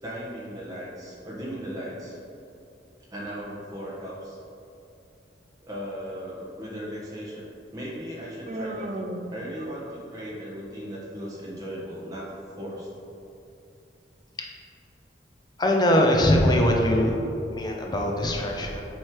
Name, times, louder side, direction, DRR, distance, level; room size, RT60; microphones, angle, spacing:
voice 1, 0.0-2.2 3.1-4.4 5.6-12.9, equal, 20° right, -6 dB, 1.2 m, -37 dB
Human voice, 8.5-10.2, right 1 dB, 35° right, 0.4 m, -36 dB
voice 2, 15.6-17.1 17.5-18.8, left 1 dB, 20° left, 0 dB, 0.6 m, -21 dB
7.4 x 3.2 x 4.7 m, 2.7 s
head